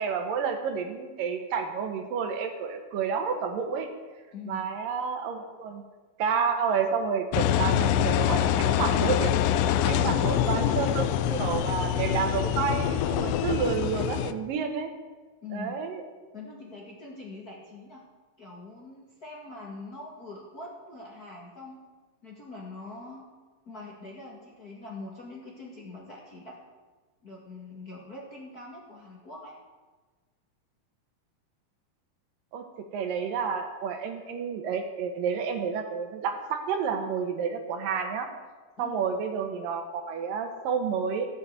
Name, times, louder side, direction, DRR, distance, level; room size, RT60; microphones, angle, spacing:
voice 1, 0.0-3.9 4.5-5.8 6.2-9.3 9.8-14.9 15.5-16.0 32.5-32.7 32.9-38.3 38.8-41.3, right 6 dB, 75° right, 5 dB, 2.9 m, -30 dB
voice 2, 4.3-4.7 9.9-10.8 15.4-15.8 16.3-18.0 18.4-21.8 22.2-23.3 23.6-26.6 27.2-29.6 38.8-39.0, left 3 dB, 35° left, -3 dB, 1.7 m, -43 dB
Engine, 7.3-14.3, left 10 dB, 85° left, 2.3 m, -25 dB
14.5 x 7.8 x 8.0 m, 1.3 s
omnidirectional pair, 4.0 m